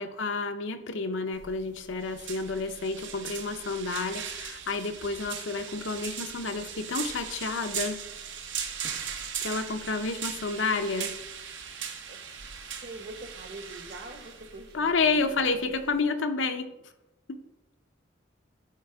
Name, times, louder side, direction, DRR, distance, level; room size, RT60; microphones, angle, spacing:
voice 1, 0.0-8.0 9.4-11.1 14.7-16.7 17.3-17.4, left 4 dB, 75° left, 7 dB, 0.7 m, -30 dB
sound 1, 1.3-16.0, right 7 dB, 75° right, 1.0 m, -39 dB
voice 2, 12.8-15.7, right 2 dB, 50° right, 5 dB, 1.2 m, -44 dB
9.2 x 4.3 x 4.7 m, 0.94 s
head